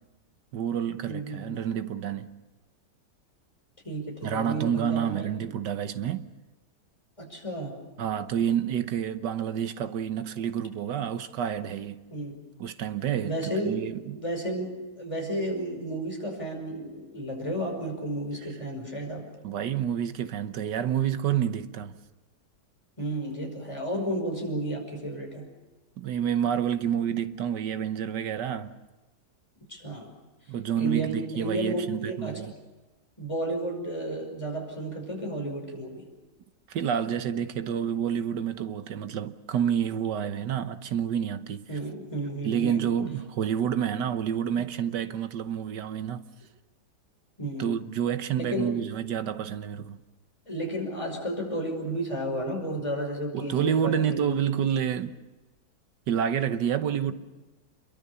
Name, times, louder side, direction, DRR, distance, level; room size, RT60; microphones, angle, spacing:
voice 1, 0.5-2.3 4.2-6.3 8.0-12.0 12.6-13.3 13.6-14.2 19.4-22.0 26.0-28.7 30.5-32.5 36.7-41.7 42.4-46.2 47.6-50.0 53.3-55.2 56.1-57.1, right 9 dB, 75° right, 1.6 m, -29 dB
voice 2, 1.0-1.6 3.8-5.3 7.2-7.7 12.1-12.4 13.2-19.3 23.0-25.5 29.7-30.1 30.7-32.5 33.2-36.1 41.7-42.9 47.4-47.8 48.4-48.8 50.5-54.4 57.0-57.1, right 1 dB, 15° left, 5.4 m, -32 dB
27.0 x 23.0 x 6.9 m
omnidirectional pair, 1.9 m